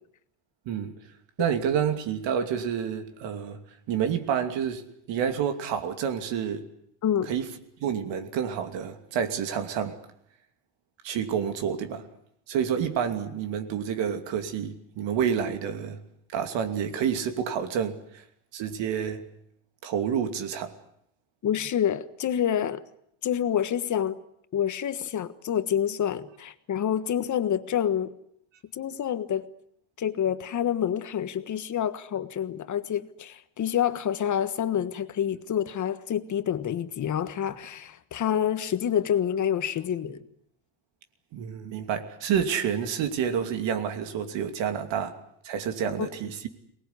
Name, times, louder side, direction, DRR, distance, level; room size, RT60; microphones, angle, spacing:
voice 1, 1.4-3.6 3.9-4.8 5.1-6.6 7.3-7.5 7.8-10.0 11.0-12.1 12.5-16.0 16.3-18.2 18.5-19.2 19.8-20.7 41.3-45.2 45.4-46.5, right 8 dB, 65° right, 2.8 m, -29 dB
voice 2, 21.4-22.8 23.2-24.2 24.5-28.1 28.7-29.4 30.0-40.2 46.0-46.2, left 9 dB, 40° left, 1.5 m, -27 dB
23.0 x 20.0 x 9.7 m
cardioid pair, 135°, 47 cm